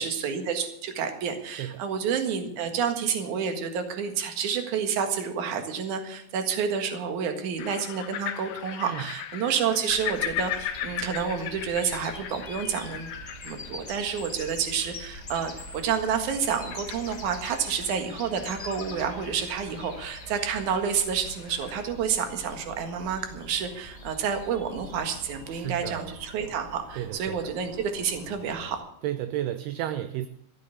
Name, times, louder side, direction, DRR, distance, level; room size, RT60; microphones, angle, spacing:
voice 1, 0.0-13.2 13.4-28.8, right 7 dB, 55° right, 6 dB, 2.7 m, -29 dB
sound 1, 7.6-21.9, left 11 dB, 70° left, 2.2 m, -39 dB
sound 2, 9.9-28.8, left 1 dB, 35° left, 0.6 m, -44 dB
voice 2, 25.5-26.2 27.0-27.5 29.0-30.3, right 12 dB, 80° right, 11 dB, 2.5 m, -32 dB
14.5 x 8.6 x 8.4 m, 0.71 s
omnidirectional pair, 4.9 m